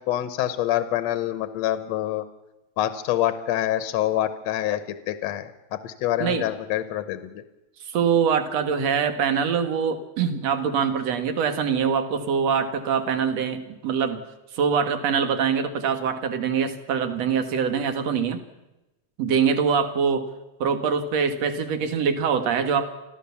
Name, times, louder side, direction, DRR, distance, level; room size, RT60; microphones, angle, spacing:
voice 1, 0.1-2.3 2.8-7.4, left 12 dB, 70° left, 11 dB, 2.1 m, -26 dB
voice 2, 7.9-14.2 14.5-18.4 19.2-20.2 20.6-22.9, right 6 dB, 65° right, 8 dB, 2.8 m, -24 dB
25.5 x 15.5 x 7.1 m, 0.98 s
omnidirectional pair, 3.4 m